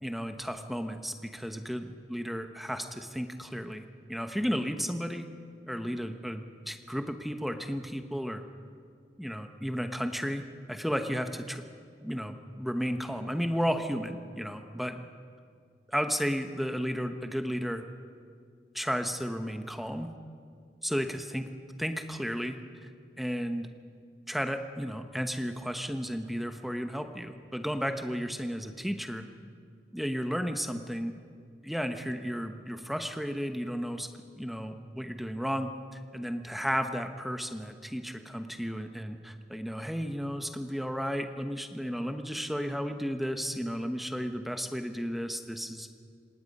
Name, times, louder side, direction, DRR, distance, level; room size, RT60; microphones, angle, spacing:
voice 1, 0.0-5.3 5.7-8.4 9.2-11.6 12.0-15.0 15.9-17.8 18.7-20.1 20.8-21.5 21.8-22.6 23.2-23.7 24.3-29.3 29.9-31.1 31.6-45.9, equal, ahead, 6 dB, 1.0 m, -33 dB
26.5 x 18.5 x 5.5 m, 2.2 s
head